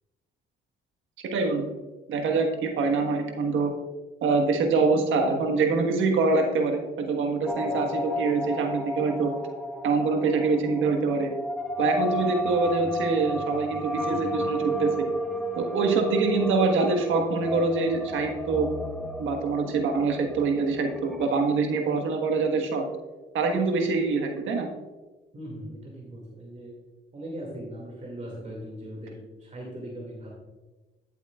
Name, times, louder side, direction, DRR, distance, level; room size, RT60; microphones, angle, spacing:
voice 1, 1.3-1.8 2.1-3.7 4.2-9.3 9.8-11.3 11.8-15.0 15.6-18.7 19.2-22.9 23.3-24.7, right 4 dB, 80° right, 3 dB, 1.4 m, -25 dB
sound 1, 7.5-21.3, equal, ahead, 0.8 m, -32 dB
voice 2, 25.3-26.7 27.1-30.3, right 1 dB, 35° right, -3 dB, 2.2 m, -39 dB
11.5 x 7.9 x 2.4 m, 1.2 s
cardioid pair, 90°, 20 cm